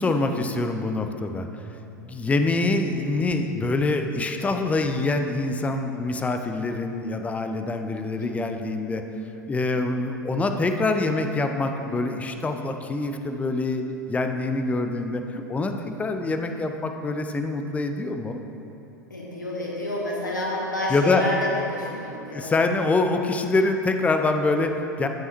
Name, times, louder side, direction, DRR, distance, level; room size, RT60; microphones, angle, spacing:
voice 1, 0.0-1.5 2.0-9.0 9.5-18.4 20.9-21.2 22.3-25.1, left 3 dB, 15° left, 6 dB, 0.5 m, -25 dB
voice 2, 19.1-21.4 21.7-22.5, left 1 dB, 85° left, -5 dB, 1.7 m, -29 dB
14.5 x 5.5 x 3.0 m, 2.8 s
figure-of-eight pair, 85°, 10 cm